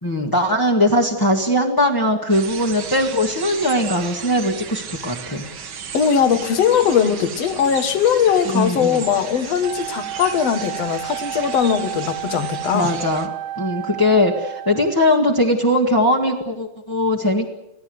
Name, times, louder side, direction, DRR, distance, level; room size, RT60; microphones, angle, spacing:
voice 1, 0.0-5.4 8.4-9.0 12.7-13.3 13.6-17.5, left 1 dB, 10° left, -1 dB, 1.2 m, -20 dB
sound 1, 2.3-13.3, right 7 dB, 50° right, 2.0 m, -35 dB
voice 2, 5.9-12.9, left 7 dB, 60° left, 9 dB, 2.6 m, -20 dB
Wind instrument woodwind instrument, 9.6-15.1, right 12 dB, 70° right, 2.1 m, -31 dB
26.5 x 17.0 x 7.9 m, 0.91 s
omnidirectional pair, 3.4 m